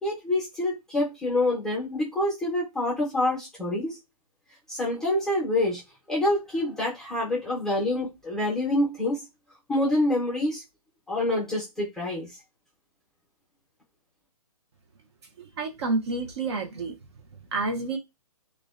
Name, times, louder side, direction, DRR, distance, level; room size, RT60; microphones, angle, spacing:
voice 1, 0.0-4.0 4.7-5.8 6.1-9.2 9.7-10.6 11.1-12.3, left 1 dB, ahead, 0.6 m, -26 dB
voice 2, 15.4-16.9 17.5-18.0, right 3 dB, 45° right, 0.5 m, -29 dB
2.5 x 2.1 x 2.3 m
hypercardioid pair, 155°, 19 cm